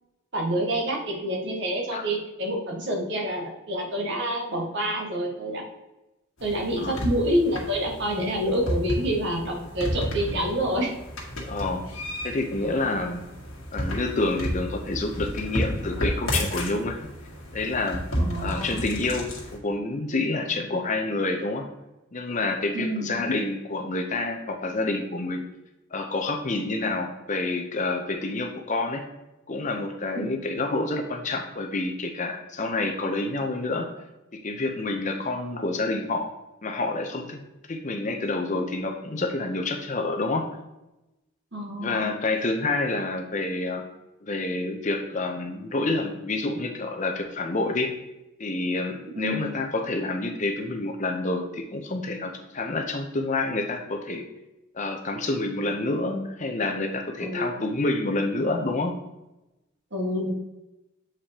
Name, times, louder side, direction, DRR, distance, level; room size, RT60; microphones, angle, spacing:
voice 1, 0.3-5.6 6.4-10.9 18.2-18.8 22.7-23.1 30.1-30.4 41.5-42.1 49.1-49.5 57.2-57.6 59.9-60.3, equal, 55° right, -1 dB, 1.5 m, -27 dB
sound 1, 6.4-19.6, equal, 65° left, 1.6 m, -32 dB
voice 2, 11.5-11.8 12.2-13.2 13.7-17.0 17.5-18.0 18.4-21.7 22.1-25.4 25.9-29.0 29.5-33.9 34.3-36.3 36.6-37.4 37.7-40.5 41.8-43.8 44.2-47.9 48.4-54.2 54.7-58.9, left 2 dB, 35° left, 4 dB, 0.6 m, -28 dB
7.4 x 4.9 x 2.8 m, 0.96 s
head